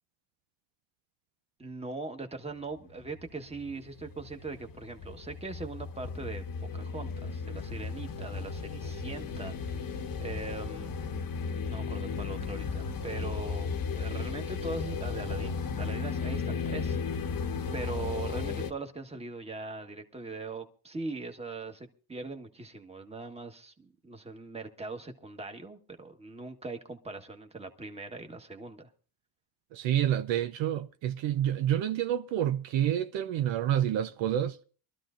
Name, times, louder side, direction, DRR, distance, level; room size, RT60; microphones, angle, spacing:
voice 1, 1.6-6.4 6.7-10.9 11.7-13.7 14.0-17.3 17.7-28.9, right 3 dB, 15° right, 1.5 m, -41 dB
sound 1, 2.8-18.7, left 5 dB, 45° left, 1.1 m, -35 dB
voice 2, 29.7-34.6, right 11 dB, 70° right, 0.8 m, -28 dB
24.0 x 13.0 x 2.6 m
cardioid pair, 115°, 47 cm